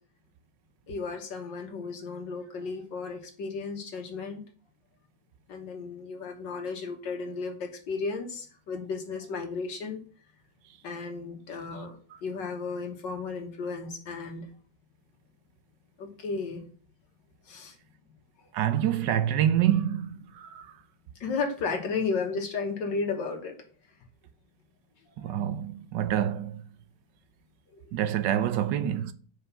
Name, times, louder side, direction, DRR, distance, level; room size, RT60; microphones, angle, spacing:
voice 1, 0.9-4.4 5.5-10.0 10.8-14.5 16.0-16.6 17.5-17.8 21.2-23.6 25.2-25.4 27.7-27.8, left 4 dB, 70° left, 1.9 m, -34 dB
voice 2, 18.5-20.7 25.2-26.6 27.9-29.1, right 10 dB, 75° right, 1.2 m, -27 dB
7.5 x 5.0 x 5.6 m
omnidirectional pair, 2.0 m